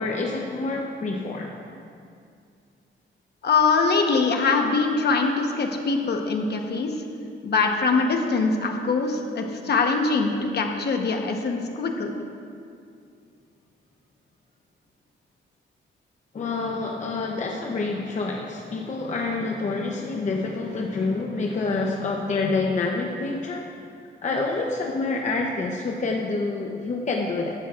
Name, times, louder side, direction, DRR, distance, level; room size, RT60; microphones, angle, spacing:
voice 1, 0.0-1.5 16.3-23.7 24.2-27.5, left 3 dB, 35° left, 0 dB, 0.8 m, -27 dB
voice 2, 3.4-6.9 7.4-12.1, left 4 dB, 55° left, 3 dB, 1.1 m, -23 dB
15.5 x 12.0 x 2.5 m, 2.4 s
wide cardioid pair, 170°, 21 cm